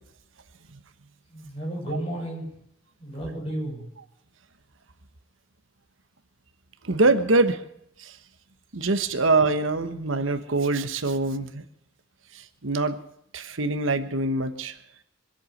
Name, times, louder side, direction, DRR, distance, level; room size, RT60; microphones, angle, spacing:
voice 1, 1.3-2.5 3.0-3.9, right 1 dB, 30° left, -2 dB, 7.5 m, -32 dB
voice 2, 6.8-7.6 8.0-8.1 8.7-11.6 12.6-13.0 13.3-14.7, right 3 dB, 80° right, 10 dB, 1.2 m, -24 dB
24.5 x 8.3 x 6.5 m, 0.73 s
head